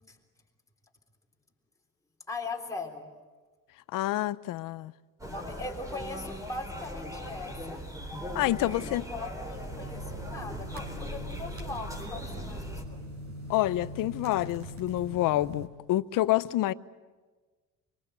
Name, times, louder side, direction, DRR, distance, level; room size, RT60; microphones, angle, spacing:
voice 1, 2.3-3.1 5.2-7.8 8.5-13.0, left 3 dB, 10° left, 3.6 m, -40 dB
voice 2, 3.9-4.9 8.3-9.0 13.5-16.7, left 15 dB, 70° left, 0.8 m, -28 dB
sound 1, 5.2-12.8, equal, 10° right, 3.7 m, -39 dB
sound 2, 9.5-15.7, equal, 45° right, 5.4 m, -42 dB
25.0 x 24.0 x 8.0 m
cardioid pair, 145°, 33 cm